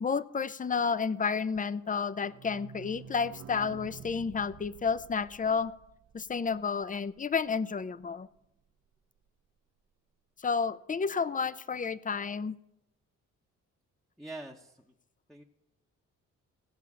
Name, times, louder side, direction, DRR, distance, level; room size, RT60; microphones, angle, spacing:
voice 1, 0.0-5.7 6.1-8.3 10.4-12.6, left 5 dB, 25° left, 17 dB, 0.6 m, -31 dB
sound 1, 1.8-7.4 7.7-7.8 8.0-8.1 8.4-8.5, right 8 dB, 55° right, 0.8 m, -50 dB
voice 2, 14.2-14.9 15.3-15.4, right 2 dB, ahead, -1 dB, 1.0 m, -44 dB
17.0 x 5.7 x 8.5 m, 0.85 s
cardioid pair, 75°, 31 cm